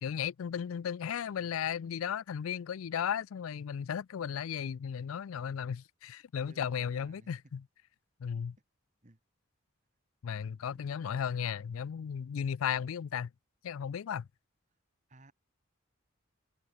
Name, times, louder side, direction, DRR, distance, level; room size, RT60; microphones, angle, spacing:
voice 1, 0.0-7.6 8.2-8.6 10.2-13.3 13.6-14.3, left 8 dB, 90° left, 0.4 m, -35 dB
voice 2, 1.3-1.6 6.4-7.3 9.0-9.2 10.7-10.8 15.1-15.3, right 2 dB, 35° right, 1.5 m, -58 dB
head